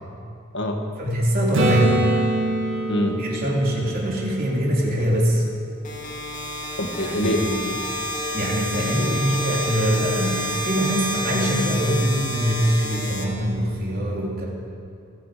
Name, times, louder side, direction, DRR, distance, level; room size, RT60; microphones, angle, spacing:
voice 1, 1.0-2.1 3.2-5.5 7.0-7.4 8.3-14.5, right 1 dB, 45° right, -3 dB, 3.4 m, -23 dB
Acoustic guitar / Strum, 1.5-5.3 10.1-10.2, right 1 dB, 60° right, 2.4 m, -25 dB
voice 2, 2.9-3.2 6.8-7.4 7.7-7.8 8.9-9.2, left 1 dB, 55° left, 3 dB, 1.8 m, -25 dB
sound 1, 5.8-13.9, left 1 dB, 35° left, 2.7 m, -29 dB
28.5 x 9.7 x 5.1 m, 2.3 s
head